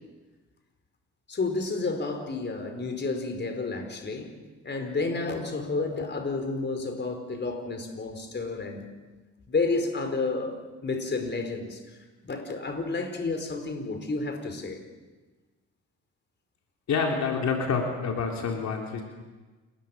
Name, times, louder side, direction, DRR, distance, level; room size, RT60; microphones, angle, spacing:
voice 1, 1.3-4.4 4.6-8.8 9.5-12.0 12.2-14.8, left 3 dB, 35° left, 6 dB, 4.7 m, -31 dB
voice 2, 16.9-19.0, left 5 dB, 65° left, 1 dB, 3.8 m, -27 dB
28.5 x 20.5 x 7.3 m, 1.3 s
cardioid pair, 90°, 30 cm